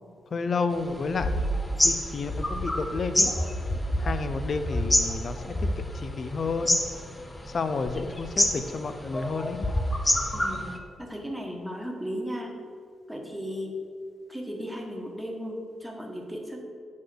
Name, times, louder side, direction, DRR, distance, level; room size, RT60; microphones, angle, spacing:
voice 1, 0.3-1.4 1.8-3.3 4.0-5.7 5.9-6.8 7.5-9.7, left 4 dB, 50° left, 10 dB, 0.6 m, -31 dB
sound 1, 0.8-10.8, left 1 dB, 15° left, 0.8 m, -28 dB
voice 2, 10.3-10.7 11.0-12.6 13.1-13.8 14.3-16.6, equal, 5° right, 0 dB, 1.5 m, -35 dB
8.3 x 4.8 x 6.4 m, 2.2 s
cardioid pair, 95°, 0 cm